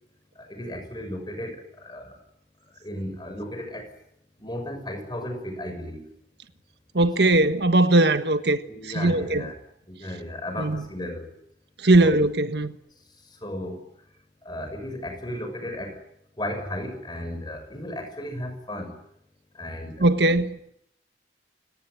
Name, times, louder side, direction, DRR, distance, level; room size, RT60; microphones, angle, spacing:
voice 1, 0.3-2.2 2.8-3.9 4.4-6.0 7.9-8.0 8.7-9.6 9.9-11.3 12.0-12.2 13.2-13.9 14.4-16.0 16.4-19.0 19.5-20.0, left 1 dB, 25° left, 6.5 m, -35 dB
voice 2, 6.9-9.5 10.6-10.8 11.8-12.8 20.0-20.6, right 2 dB, 70° right, 1.4 m, -20 dB
29.0 x 18.5 x 9.5 m
head